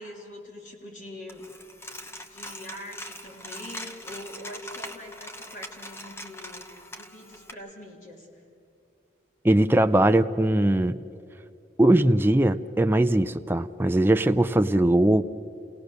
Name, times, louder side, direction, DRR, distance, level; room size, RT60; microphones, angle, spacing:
voice 1, 0.0-1.4 2.1-6.7 6.9-8.4, left 1 dB, 45° left, 0 dB, 3.4 m, -43 dB
Coin (dropping), 1.3-7.5, left 1 dB, 15° left, 1.0 m, -41 dB
voice 2, 9.4-11.0 11.8-15.2, right 1 dB, 10° right, 8 dB, 0.4 m, -20 dB
29.0 x 17.5 x 6.7 m, 2.6 s
head